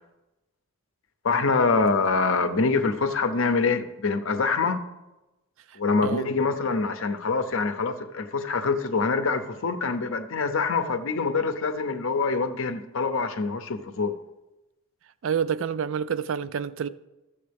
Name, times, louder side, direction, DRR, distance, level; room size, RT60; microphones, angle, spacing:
voice 1, 1.2-4.8 5.8-14.2, left 4 dB, 70° left, 0.7 m, -25 dB
voice 2, 5.7-6.3 15.2-16.9, right 7 dB, 65° right, 0.3 m, -28 dB
13.5 x 7.1 x 3.4 m
head